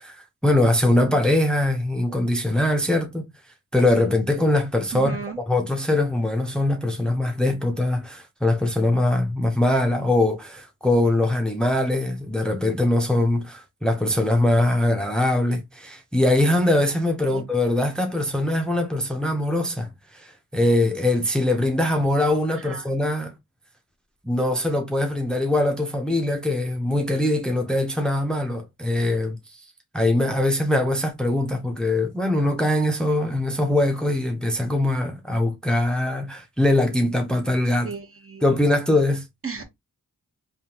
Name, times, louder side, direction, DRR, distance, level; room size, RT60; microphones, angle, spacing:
voice 1, 0.0-3.3 3.7-23.3 24.2-29.4 29.9-37.9 38.4-39.3, left 1 dB, ahead, 0.7 m, -22 dB
voice 2, 4.9-5.4 17.3-17.4 22.6-22.8 37.8-38.4 39.4-39.6, right 5 dB, 40° right, 1.1 m, -34 dB
3.5 x 2.3 x 2.9 m
cardioid pair, 40°, 35 cm